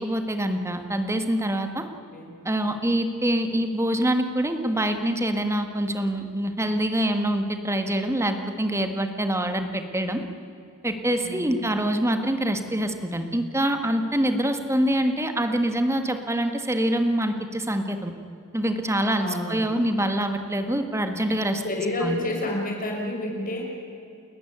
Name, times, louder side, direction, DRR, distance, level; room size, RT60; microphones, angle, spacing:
voice 1, 0.0-1.8 2.4-10.2 10.8-18.1 18.5-21.6 22.0-22.2, right 1 dB, 15° right, 7 dB, 1.6 m, -25 dB
voice 2, 11.2-11.7 19.2-19.7 21.6-23.6, left 1 dB, 40° left, 0 dB, 5.5 m, -30 dB
30.0 x 13.5 x 9.5 m, 2.8 s
head